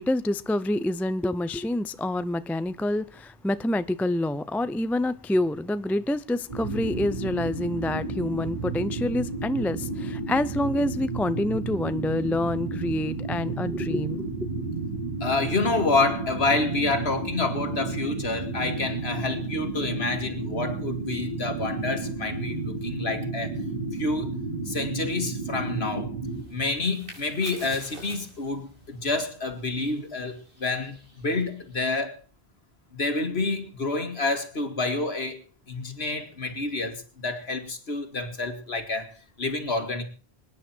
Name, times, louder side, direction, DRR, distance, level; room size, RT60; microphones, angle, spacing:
voice 1, 0.0-14.5, left 1 dB, 5° left, 0.3 m, -27 dB
sound 1, 6.5-26.4, right 3 dB, 30° right, 5.2 m, -32 dB
voice 2, 15.2-23.5 23.9-24.3 24.7-26.1 26.5-32.2 32.9-40.0, left 3 dB, 65° left, 2.4 m, -28 dB
sound 2, 26.2-32.0, equal, 50° right, 5.4 m, -47 dB
25.5 x 9.8 x 4.4 m
omnidirectional pair, 1.2 m